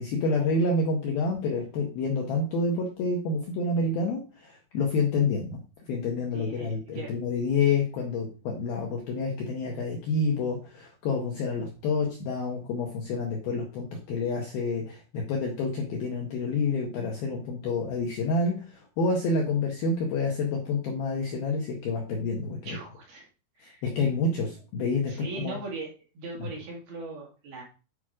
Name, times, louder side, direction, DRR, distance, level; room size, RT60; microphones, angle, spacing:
voice 1, 0.0-5.6 5.9-22.8 23.6-25.6 26.4-26.5, left 3 dB, 70° left, 0 dB, 2.4 m, -28 dB
voice 2, 6.3-7.1 22.6-23.3 23.6-23.8 25.1-25.9 26.1-27.6, right 3 dB, 60° right, -1 dB, 3.2 m, -39 dB
9.3 x 5.0 x 5.0 m, 0.34 s
omnidirectional pair, 6.0 m